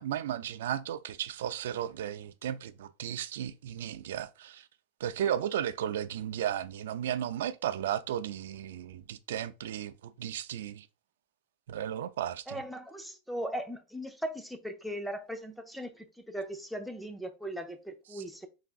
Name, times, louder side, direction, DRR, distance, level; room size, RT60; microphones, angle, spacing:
voice 1, 0.0-4.7 5.0-10.9 11.7-12.6 18.1-18.2, right 10 dB, 80° right, 0.4 m, -34 dB
voice 2, 12.5-18.5, equal, ahead, 0.5 m, -38 dB
4.9 x 3.4 x 2.4 m
supercardioid pair, 155°, 0 cm